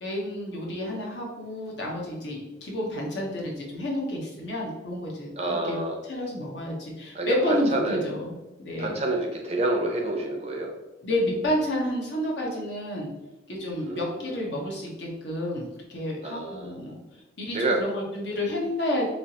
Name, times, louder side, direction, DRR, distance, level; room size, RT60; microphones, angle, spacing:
voice 1, 0.0-9.0 11.0-13.1 13.5-17.0 17.4-19.1, left 1 dB, 75° left, -2 dB, 0.9 m, -30 dB
voice 2, 5.4-6.0 7.1-8.1 8.8-10.7 13.8-14.4 16.2-16.7 17.5-17.8, right 2 dB, 35° right, 1 dB, 0.5 m, -28 dB
3.2 x 2.9 x 2.8 m, 1.0 s
head